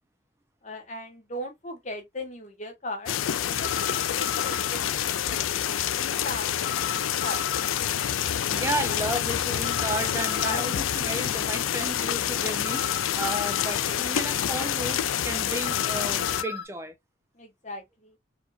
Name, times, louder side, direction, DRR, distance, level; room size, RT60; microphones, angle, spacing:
voice 1, 0.6-3.1 3.6-5.5 5.9-7.7 8.9-9.0 10.0-10.7 17.3-18.2, left 1 dB, 35° left, 0.9 m, -38 dB
sound 1, 3.1-16.4, left 10 dB, 85° left, 0.4 m, -27 dB
sound 2, 3.6-4.7 6.6-7.7 9.6-10.8 12.6-13.8 15.6-16.7, left 6 dB, 60° left, 2.0 m, -35 dB
voice 2, 8.5-16.9, right 1 dB, 15° right, 0.5 m, -33 dB
4.4 x 2.7 x 2.3 m
head